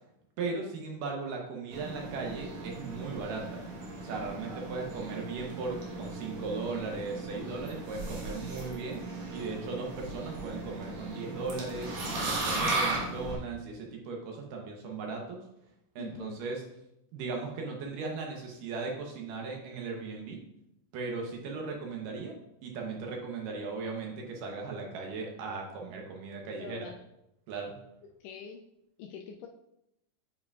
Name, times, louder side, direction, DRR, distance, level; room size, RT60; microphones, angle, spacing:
voice 1, 0.4-3.6 4.0-9.0 9.3-11.9 12.2-15.4 16.0-16.6 17.1-20.4 20.9-22.3 22.6-26.9 27.5-27.8, right 4 dB, 75° right, 1 dB, 2.3 m, -37 dB
sound 1, 1.7-13.4, right 2 dB, 55° right, 2.2 m, -37 dB
voice 2, 16.0-16.4 26.6-27.0 28.2-28.6 29.0-29.5, left 6 dB, 85° left, 2 dB, 1.9 m, -44 dB
8.4 x 4.8 x 2.4 m, 0.81 s
omnidirectional pair, 4.2 m